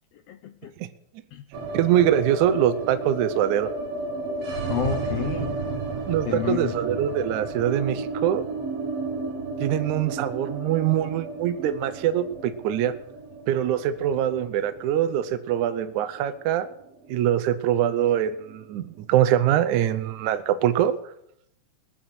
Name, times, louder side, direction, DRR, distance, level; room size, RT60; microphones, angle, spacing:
voice 1, 0.3-0.7 1.3-1.4 4.7-5.6 6.2-6.8, left 12 dB, 85° left, 9 dB, 1.4 m, -30 dB
sound 1, 1.5-17.6 17.9-18.0 18.3-19.0, right 3 dB, 55° right, 2.6 m, -33 dB
voice 2, 1.7-3.7 6.1-8.4 9.6-12.9 13.5-16.7 17.1-21.1, right 11 dB, 75° right, 10 dB, 2.1 m, -23 dB
20.5 x 7.9 x 6.2 m, 0.76 s
omnidirectional pair, 3.7 m